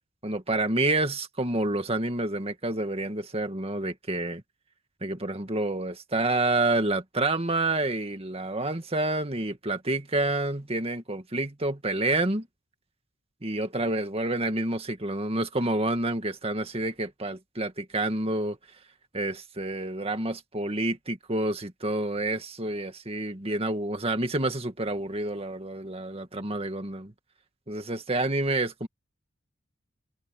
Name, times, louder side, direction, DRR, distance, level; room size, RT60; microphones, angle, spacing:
voice 1, 0.2-4.4 5.0-12.5 13.4-18.6 19.1-27.1 27.7-28.9, right 2 dB, 30° right, 2.0 m, -28 dB
head